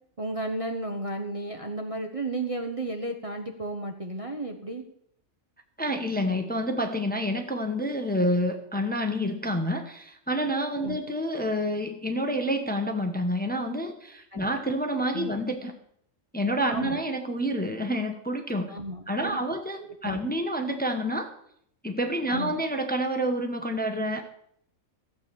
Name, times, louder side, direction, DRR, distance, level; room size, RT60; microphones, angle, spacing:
voice 1, 0.2-4.8 10.8-11.0 14.3-14.5 15.1-15.3 16.7-17.0 18.7-20.2 22.3-22.6, right 2 dB, 25° right, 3 dB, 1.1 m, -33 dB
voice 2, 5.8-15.7 16.3-18.7 19.1-21.3 21.8-24.2, equal, 5° left, 5 dB, 1.1 m, -28 dB
15.0 x 8.2 x 7.0 m, 0.70 s
omnidirectional pair, 1.4 m